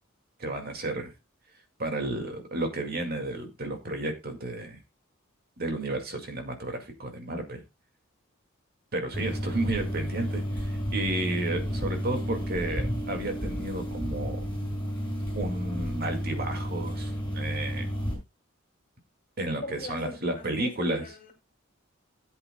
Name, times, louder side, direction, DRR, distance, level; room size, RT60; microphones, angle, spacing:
voice 1, 0.4-1.1 1.8-4.8 5.6-7.6 8.9-14.4 15.4-17.9 19.4-21.1, right 2 dB, 45° right, 2.1 m, -32 dB
sound 1, 9.1-18.1, equal, 5° left, 5.3 m, -32 dB
voice 2, 19.5-21.3, left 2 dB, 40° left, 2.4 m, -41 dB
17.0 x 8.3 x 2.2 m
head